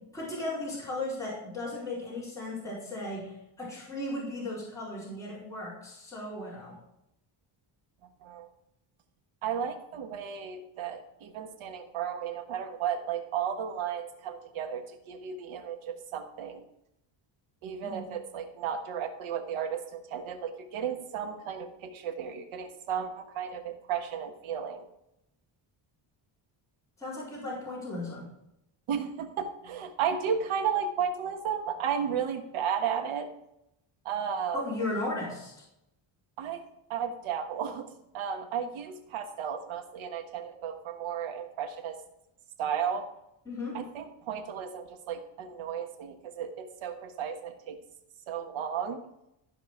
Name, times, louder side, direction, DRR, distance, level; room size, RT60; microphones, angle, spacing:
voice 1, 0.1-6.8 17.8-18.0 27.0-28.3 34.5-35.5 43.4-43.8, left 2 dB, 5° left, -9 dB, 4.6 m, -36 dB
voice 2, 9.4-16.6 17.6-24.8 28.9-33.3 34.0-34.7 36.4-36.6 36.9-42.0 42.6-43.1 43.7-47.8 48.3-49.0, right 7 dB, 85° right, 6 dB, 1.5 m, -34 dB
14.5 x 5.1 x 4.8 m, 0.82 s
cardioid pair, 155°, 47 cm